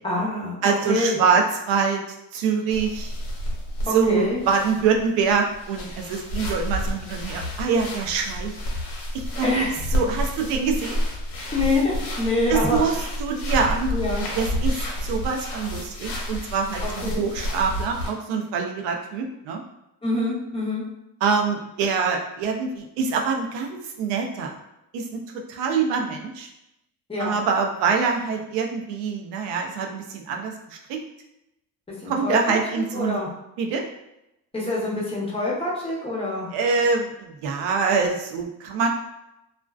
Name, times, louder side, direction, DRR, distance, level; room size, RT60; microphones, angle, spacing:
voice 1, 0.0-1.2 3.9-4.4 9.4-9.8 11.5-13.1 13.9-14.2 16.8-17.2 20.0-20.9 27.1-27.3 32.0-32.6 32.9-33.3 34.5-36.5, left 2 dB, 15° left, -4 dB, 0.8 m, -26 dB
voice 2, 0.6-2.0 2.3-3.1 3.8-8.5 9.1-9.5 9.9-11.0 12.5-19.6 21.2-24.6 24.9-25.2 25.5-26.5 27.2-31.0 32.1-33.2 33.6-33.8 36.5-38.9, right 5 dB, 85° right, 3 dB, 0.6 m, -25 dB
sound 1, 2.7-18.1, equal, 70° left, 0.9 m, -30 dB
2.5 x 2.2 x 2.3 m, 0.87 s
cardioid pair, 95°, 42 cm